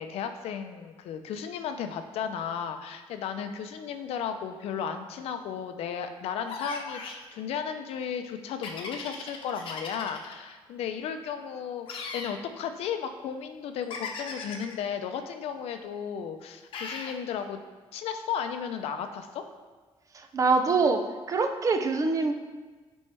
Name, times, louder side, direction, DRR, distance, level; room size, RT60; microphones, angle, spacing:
voice 1, 0.0-17.6 17.9-19.4, left 7 dB, 85° left, 7 dB, 0.6 m, -34 dB
sound 1, 6.5-7.2 8.6-10.3 11.9-12.4 13.9-14.7 16.7-17.2, left 4 dB, 60° left, 0.9 m, -38 dB
voice 2, 20.1-21.0 21.3-22.3, right 4 dB, 35° right, 6 dB, 0.5 m, -24 dB
8.4 x 5.4 x 3.4 m, 1.3 s
cardioid pair, 145°, 10 cm